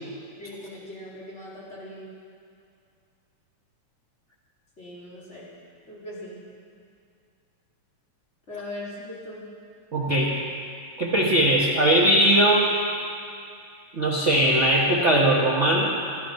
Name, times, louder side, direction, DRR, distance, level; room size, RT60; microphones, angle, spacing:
voice 1, 0.4-2.1 4.8-5.5 5.9-6.4 8.5-9.4, left 1 dB, 25° left, -7 dB, 3.2 m, -39 dB
voice 2, 9.9-10.4 11.0-12.7 13.9-15.9, right 1 dB, 85° right, -4 dB, 0.6 m, -20 dB
13.5 x 13.0 x 5.8 m, 2.4 s
omnidirectional pair, 3.4 m